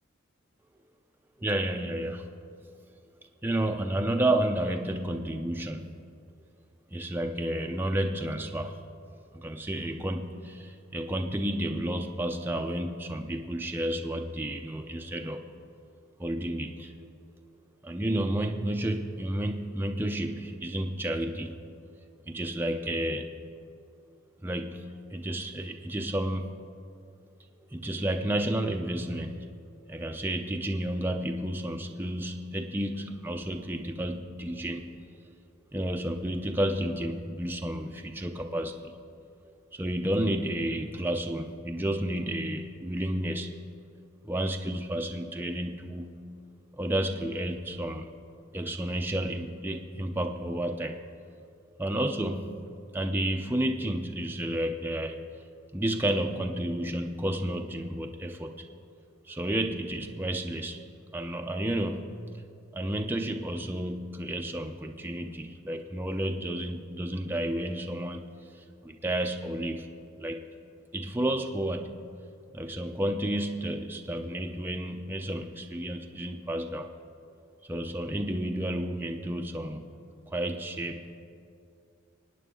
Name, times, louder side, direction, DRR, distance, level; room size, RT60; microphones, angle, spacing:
voice 1, 1.4-2.4 3.4-6.0 6.9-8.8 9.3-15.5 16.2-16.9 17.8-21.6 22.3-23.3 24.4-26.6 27.7-29.5 29.9-34.9 35.7-38.9 39.7-43.6 44.2-46.2 46.8-48.1 48.5-51.0 51.8-52.5 52.9-55.2 55.7-58.5 59.3-60.8 61.1-62.1 62.7-68.3 68.5-69.9 70.2-70.4 70.9-72.0 72.5-76.9 77.6-79.8 80.3-81.2, right 1 dB, 10° right, 3 dB, 0.5 m, -31 dB
25.5 x 9.1 x 3.8 m, 2.4 s
head